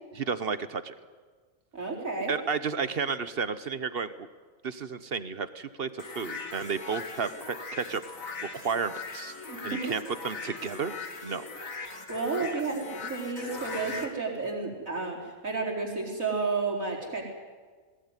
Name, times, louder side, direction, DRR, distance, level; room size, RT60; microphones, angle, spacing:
voice 1, 0.1-0.9 2.3-4.3 4.6-8.0 8.4-9.3 9.6-10.9 11.2-11.5, right 5 dB, 50° right, 13 dB, 1.0 m, -32 dB
voice 2, 1.7-2.3 9.5-9.8 12.1-17.3, right 4 dB, 90° right, -1 dB, 4.8 m, -31 dB
sound 1, 6.0-14.1, left 4 dB, 85° left, 2.4 m, -40 dB
20.5 x 19.0 x 9.8 m, 1.5 s
omnidirectional pair, 1.4 m